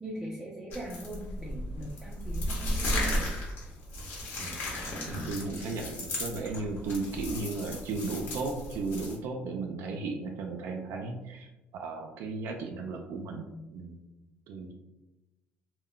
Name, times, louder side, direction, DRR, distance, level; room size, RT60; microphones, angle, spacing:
voice 1, 0.0-3.1, equal, 5° right, -4 dB, 0.5 m, -40 dB
sound 1, 0.7-9.2, left 1 dB, 60° left, 0.9 m, -35 dB
voice 2, 4.9-11.5 11.7-14.0 14.5-14.7, right 3 dB, 70° right, 3 dB, 0.4 m, -35 dB
2.2 x 2.1 x 3.7 m, 1.0 s
cardioid pair, 125°, 4 cm